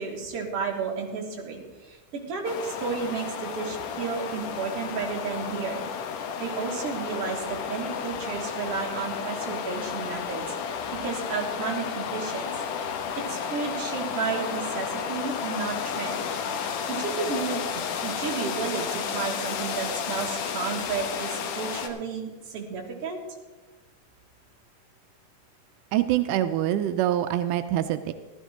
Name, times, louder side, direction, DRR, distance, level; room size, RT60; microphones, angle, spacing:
voice 1, 0.0-5.9 6.4-12.5 13.2-16.2 16.9-23.2, right 5 dB, 50° right, -1 dB, 2.7 m, -32 dB
sound 1, 2.4-21.9, left 7 dB, 80° left, 2.5 m, -32 dB
voice 2, 25.9-28.1, right 12 dB, 90° right, 10 dB, 2.1 m, -25 dB
15.5 x 13.0 x 3.7 m, 1.2 s
omnidirectional pair, 3.6 m